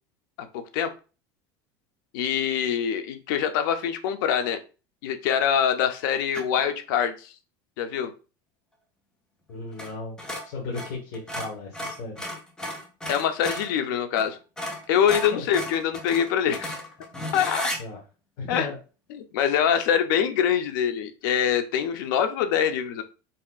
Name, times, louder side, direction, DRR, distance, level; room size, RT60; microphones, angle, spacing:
voice 1, 0.4-0.9 2.1-4.6 5.0-7.3 7.8-8.1 13.1-14.4 14.9-16.7 17.3-17.7 18.5-18.7 19.1-23.0, left 8 dB, 85° left, 8 dB, 0.6 m, -24 dB
sound 1, 6.3-6.6 9.7-9.9 10.2-13.7 14.2-14.3 14.6-17.8, left 1 dB, 5° left, 0.6 m, -34 dB
voice 2, 9.5-10.2 10.4-12.2 15.3-15.4 17.8-18.0 18.4-18.8, left 3 dB, 60° left, -3 dB, 1.3 m, -35 dB
4.1 x 3.7 x 2.4 m, 0.34 s
cardioid pair, 170°, 11 cm